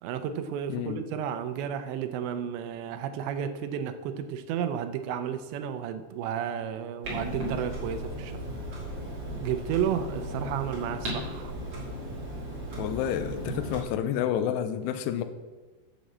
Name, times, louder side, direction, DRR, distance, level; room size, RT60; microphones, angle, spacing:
voice 1, 0.0-8.4 9.4-11.5, right 8 dB, 80° right, 9 dB, 2.9 m, -32 dB
voice 2, 0.7-1.0 12.8-15.2, left 9 dB, 80° left, 9 dB, 2.5 m, -29 dB
Clock, 7.0-13.8, equal, 35° right, 3.3 m, -36 dB
8.4 x 7.6 x 7.3 m, 1.2 s
omnidirectional pair, 5.3 m